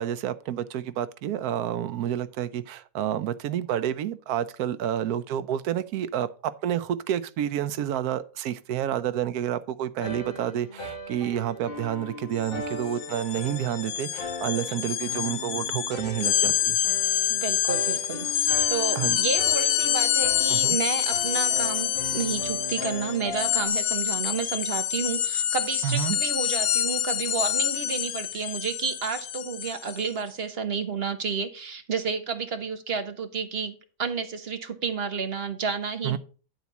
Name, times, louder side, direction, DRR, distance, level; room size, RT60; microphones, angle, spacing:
voice 1, 0.0-16.8 19.0-19.2 20.5-20.8 25.8-26.2 36.0-36.2, right 10 dB, 85° right, 1.1 m, -29 dB
sound 1, 10.0-23.7, left 2 dB, 40° left, 1.5 m, -38 dB
sound 2, 12.4-12.5 12.8-30.1, left 11 dB, 65° left, 0.8 m, -27 dB
voice 2, 17.3-36.2, right 5 dB, 45° right, 1.0 m, -31 dB
10.5 x 4.1 x 5.9 m
omnidirectional pair, 1.6 m